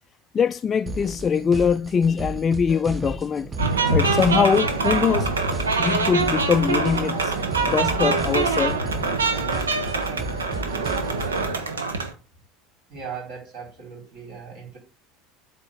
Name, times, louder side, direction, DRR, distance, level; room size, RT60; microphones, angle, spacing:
voice 1, 0.3-3.5 3.9-5.3 5.8-7.4 7.6-8.8, left 6 dB, 30° left, 0.3 m, -22 dB
sound 1, 0.9-11.5, right 3 dB, 20° right, 0.9 m, -35 dB
sound 2, 3.6-12.1, right 3 dB, 85° right, 1.2 m, -24 dB
voice 2, 12.9-14.8, right 6 dB, 55° right, 4.8 m, -38 dB
8.3 x 4.1 x 6.7 m
figure-of-eight pair, 75°, 0 cm